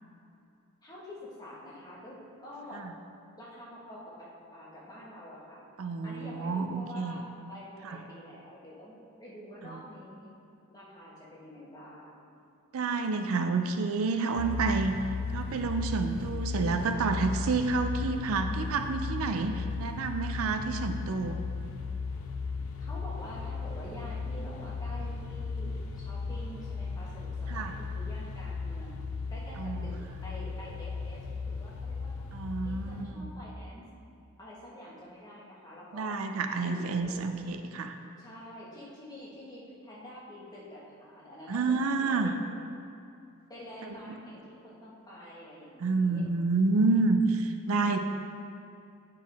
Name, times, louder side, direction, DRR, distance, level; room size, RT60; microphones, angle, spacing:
voice 1, 0.8-2.8 3.4-5.6 6.0-7.2 7.5-10.3 10.7-12.1 22.8-29.0 29.3-29.9 30.2-32.1 32.6-33.8 34.4-36.2 36.6-37.2 38.2-42.4 43.5-46.3, equal, 20° left, -7 dB, 1.4 m, -47 dB
voice 2, 5.8-7.2 7.8-8.0 9.7-9.8 12.7-14.9 15.3-21.4 27.5-27.8 29.6-29.9 32.3-33.3 35.9-38.0 41.5-42.3 44.1-44.2 45.8-48.0, right 4 dB, 75° right, 7 dB, 0.4 m, -29 dB
sound 1, 14.4-33.1, left 4 dB, 85° left, 0.6 m, -36 dB
9.2 x 4.6 x 3.5 m, 2.6 s
head